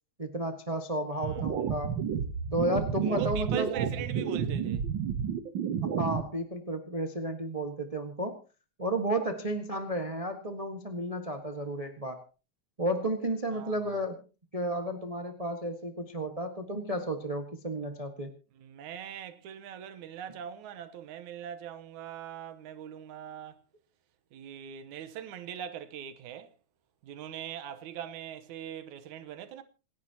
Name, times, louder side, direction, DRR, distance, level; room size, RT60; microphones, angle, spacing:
voice 1, 0.2-1.9 2.5-3.7 5.8-8.4 8.8-12.2 12.8-14.2 14.5-18.3, right 1 dB, 25° right, 0.8 m, -32 dB
voice 2, 1.1-1.5 3.0-4.8 13.5-14.0 18.5-23.6 24.3-26.5 27.0-29.6, right 10 dB, 80° right, 2.5 m, -41 dB
sound 1, 1.2-6.2, right 7 dB, 60° right, 1.3 m, -31 dB
27.5 x 10.5 x 2.9 m
omnidirectional pair, 3.4 m